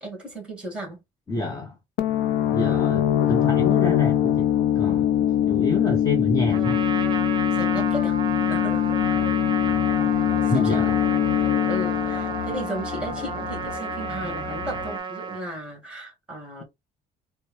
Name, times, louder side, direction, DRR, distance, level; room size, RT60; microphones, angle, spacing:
voice 1, 0.0-1.0 7.5-8.2 8.5-9.3 10.4-11.0 11.3-16.6, right 1 dB, 5° right, 2.4 m, -35 dB
voice 2, 1.3-1.8 2.5-4.5 4.7-5.0 5.5-6.8 10.5-11.0, left 3 dB, 20° left, 0.9 m, -27 dB
sound 1, 2.0-13.5, left 11 dB, 75° left, 0.6 m, -23 dB
Trumpet, 6.5-15.5, right 5 dB, 30° right, 0.8 m, -32 dB
sound 2, 8.9-15.0, left 6 dB, 50° left, 0.9 m, -36 dB
4.3 x 2.2 x 3.3 m
cardioid pair, 110°, 17 cm